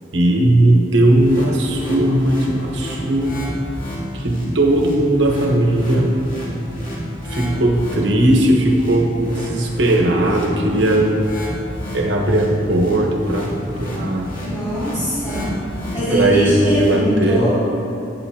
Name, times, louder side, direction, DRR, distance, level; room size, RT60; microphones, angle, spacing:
voice 1, 0.1-3.5 4.1-6.1 7.3-11.4 11.9-13.5 13.8-14.3 16.1-17.5, right 1 dB, 75° right, 0 dB, 1.2 m, -17 dB
sound 1, 1.0-16.9, equal, 50° left, 1.9 m, -30 dB
voice 2, 14.4-15.6 15.9-17.5, equal, 30° left, -14 dB, 2.4 m, -22 dB
13.0 x 8.5 x 2.9 m, 2.5 s
head